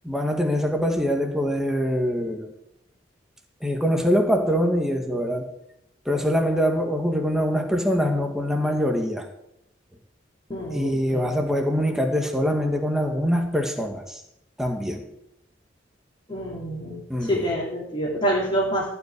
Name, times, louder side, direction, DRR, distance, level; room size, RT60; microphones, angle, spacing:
voice 1, 0.0-2.5 3.6-5.5 6.1-9.3 10.7-14.2 14.6-15.0 17.1-17.4, equal, 5° right, 3 dB, 1.9 m, -24 dB
voice 2, 10.5-11.2 16.3-18.8, equal, 25° left, -5 dB, 3.7 m, -27 dB
17.0 x 6.0 x 9.7 m, 0.80 s
head